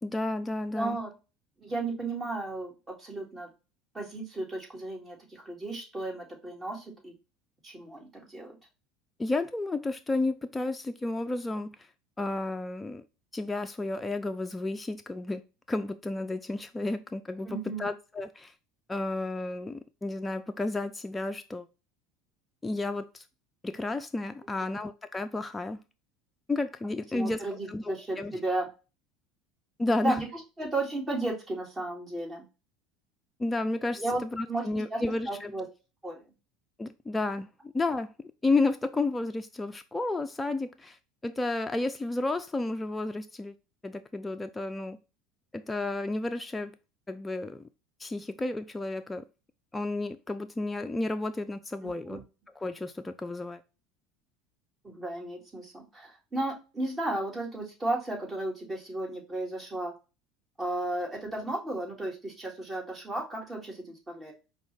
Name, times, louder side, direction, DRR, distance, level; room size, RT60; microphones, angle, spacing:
voice 1, 0.0-1.0 9.2-11.8 12.2-13.0 13.3-15.4 15.7-18.5 18.9-21.7 22.6-23.2 23.6-25.8 26.5-28.3 29.8-30.2 33.4-35.5 36.8-37.5 37.7-41.0 41.2-43.5 43.8-45.0 45.5-46.7 47.1-47.6 48.0-49.2 49.7-52.2 52.6-53.6, left 2 dB, 15° left, 0.4 m, -32 dB
voice 2, 0.7-1.1 1.6-2.7 3.0-3.5 3.9-7.1 7.6-8.5 17.4-17.9 24.6-24.7 27.1-28.7 30.0-32.4 34.0-34.6 34.9-35.0 35.3-35.7 36.0-36.2 51.8-52.2 54.8-59.9 60.6-64.3, right 2 dB, 20° right, 2.1 m, -34 dB
5.1 x 2.3 x 3.2 m
hypercardioid pair, 80°, 0 cm